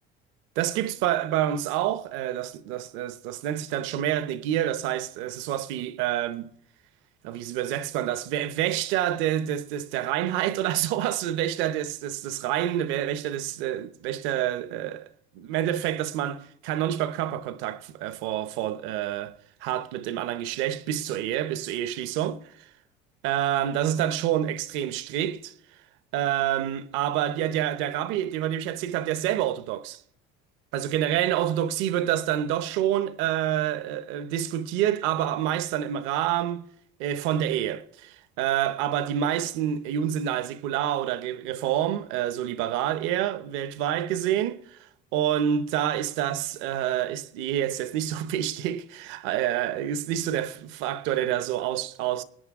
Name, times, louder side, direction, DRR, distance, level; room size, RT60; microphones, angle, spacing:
voice 1, 0.6-6.5 7.2-15.1 15.3-19.3 19.6-22.7 23.2-25.5 26.1-30.0 30.7-36.7 37.0-52.2, right 11 dB, 70° right, 0.8 m, -28 dB
20.5 x 9.4 x 3.6 m
cardioid pair, 150°, 21 cm